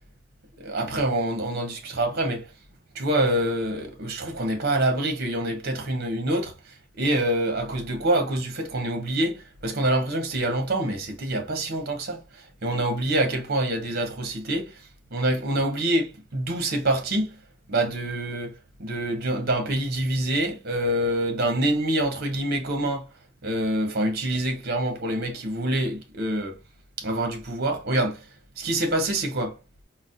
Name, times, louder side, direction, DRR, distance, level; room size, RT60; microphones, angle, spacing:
voice 1, 0.6-2.5 2.9-14.8 15.1-17.4 17.7-23.1 23.4-26.6 27.0-28.3 28.6-29.6, right 1 dB, 50° right, 0.8 m, -26 dB
4.0 x 2.0 x 2.5 m
head